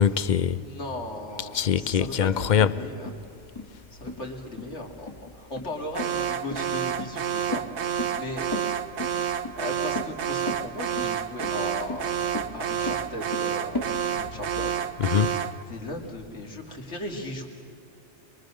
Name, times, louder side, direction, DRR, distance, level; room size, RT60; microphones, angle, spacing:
voice 1, 0.0-0.6 1.5-2.7 15.0-15.4, left 8 dB, 45° left, 0.7 m, -22 dB
voice 2, 0.6-3.1 3.9-7.7 8.1-8.5 9.6-12.1 12.5-14.8 15.7-17.5, left 1 dB, 75° left, 3.1 m, -37 dB
sound 1, 3.1-13.9, left 2 dB, 25° left, 1.6 m, -36 dB
Alarm, 6.0-15.6, right 9 dB, 70° right, 1.1 m, -29 dB
25.0 x 23.5 x 6.6 m
omnidirectional pair, 1.2 m